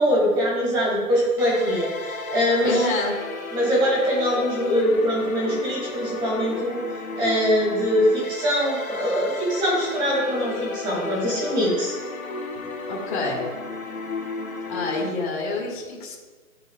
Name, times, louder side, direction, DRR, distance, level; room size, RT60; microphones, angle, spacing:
voice 1, 0.0-3.0 3.5-6.8 7.1-11.9, equal, 10° right, -5 dB, 2.8 m, -23 dB
sound 1, 1.4-15.1, left 3 dB, 85° left, 2.9 m, -33 dB
voice 2, 2.6-3.1 12.9-13.4 14.7-16.1, left 3 dB, 35° left, -4 dB, 2.3 m, -27 dB
13.0 x 9.2 x 2.5 m, 1.4 s
hypercardioid pair, 165°, 42 cm